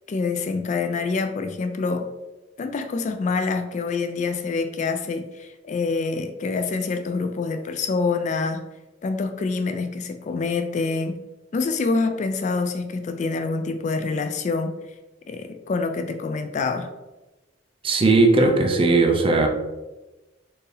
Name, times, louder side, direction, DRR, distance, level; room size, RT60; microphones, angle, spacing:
voice 1, 0.1-2.1 2.6-8.6 9.0-11.2 11.5-14.7 15.3-16.9, left 4 dB, 40° left, 7 dB, 0.3 m, -26 dB
voice 2, 17.8-19.5, right 3 dB, 30° right, 3 dB, 0.5 m, -17 dB
4.4 x 2.7 x 3.2 m, 1.1 s
head